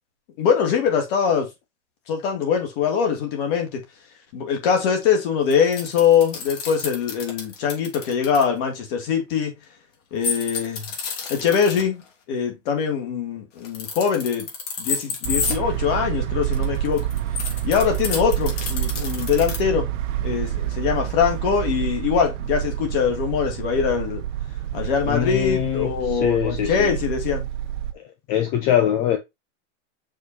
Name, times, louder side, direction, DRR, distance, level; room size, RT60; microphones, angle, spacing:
voice 1, 0.4-1.5 2.1-3.8 4.3-9.5 10.1-10.8 11.3-12.0 12.3-14.5 14.8-17.0 17.6-19.9 20.2-24.2 24.7-27.5, left 7 dB, 45° left, 2.6 m, -22 dB
sound 1, 5.5-8.4 10.2-11.8 13.6-15.6 16.4-19.6, left 5 dB, 75° left, 3.1 m, -29 dB
sound 2, 15.2-27.9, right 12 dB, 80° right, 1.2 m, -28 dB
voice 2, 25.1-27.0 28.3-29.2, left 10 dB, 30° left, 0.8 m, -22 dB
6.5 x 5.3 x 2.8 m
supercardioid pair, 165°, 37 cm